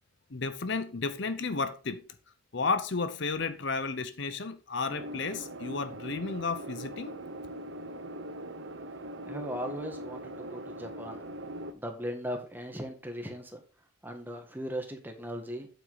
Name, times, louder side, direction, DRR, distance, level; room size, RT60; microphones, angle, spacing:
voice 1, 0.3-2.0 2.5-7.2, left 4 dB, 60° left, 0.8 m, -32 dB
sound 1, 4.9-11.7, right 1 dB, 60° right, 0.9 m, -41 dB
voice 2, 9.3-11.2 11.7-13.6 14.0-15.7, equal, 10° right, 1.7 m, -38 dB
8.6 x 8.0 x 4.1 m
head